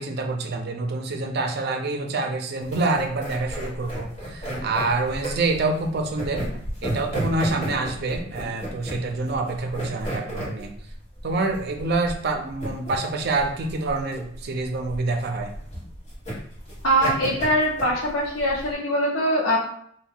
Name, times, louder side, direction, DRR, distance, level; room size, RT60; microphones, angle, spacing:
voice 1, 0.0-6.4 6.8-10.7 11.2-15.5, right 3 dB, 55° right, 4 dB, 0.4 m, -26 dB
sound 1, 2.6-18.7, right 1 dB, 35° left, 1.3 m, -33 dB
voice 2, 16.8-19.6, equal, 75° left, -3 dB, 0.7 m, -22 dB
2.7 x 2.2 x 3.7 m, 0.66 s
head